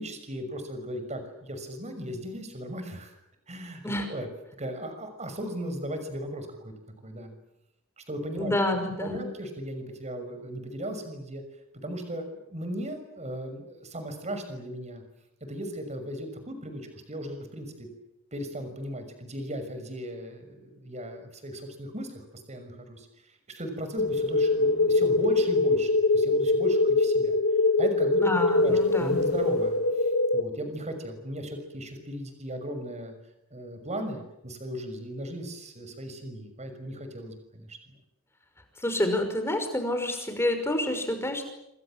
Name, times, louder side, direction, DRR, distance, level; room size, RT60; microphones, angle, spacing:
voice 1, 0.0-3.2 3.5-3.8 4.1-4.3 4.6-6.7 7.0-7.3 8.0-8.5 9.0-11.4 11.7-15.0 15.4-17.9 18.3-23.1 23.5-27.4 27.8-28.2 28.6-33.1 33.5-37.8, equal, 30° right, 8 dB, 6.1 m, -36 dB
voice 2, 8.4-9.3 28.2-29.3 38.8-41.4, left 1 dB, 10° left, 6 dB, 5.7 m, -28 dB
sound 1, 24.0-30.4, left 2 dB, 70° left, 2.1 m, -23 dB
28.0 x 26.0 x 7.6 m, 0.84 s
head